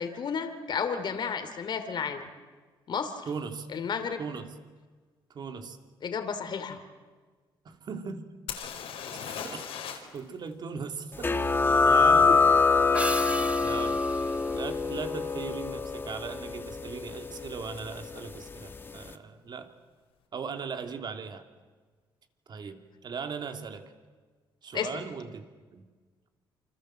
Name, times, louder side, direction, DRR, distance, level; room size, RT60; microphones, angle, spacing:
voice 1, 0.0-2.3 2.9-3.1 3.7-4.3 6.0-6.8 12.3-12.4 24.7-24.9, left 6 dB, 50° left, 8 dB, 2.9 m, -32 dB
voice 2, 3.3-3.7 4.2-4.6 5.3-5.8 7.6-8.3 8.7-8.8 9.4-9.6 10.1-11.3 11.6-12.3 13.6-14.0 14.5-19.7 20.3-21.4 22.5-23.9 24.6-25.4 25.7-25.9, right 5 dB, 50° right, 6 dB, 2.9 m, -38 dB
sound 1, 8.5-10.2 10.5-10.6 14.0-14.1 14.7-14.9 15.1-15.7 17.8-17.9 18.1-18.2, left 8 dB, 80° left, 4.5 m, -38 dB
sound 2, 11.2-18.5, left 4 dB, 20° left, 1.9 m, -25 dB
sound 3, 12.9-15.6, right 2 dB, 15° right, 1.6 m, -38 dB
28.0 x 26.0 x 7.8 m, 1.4 s
cardioid pair, 105°, 10 cm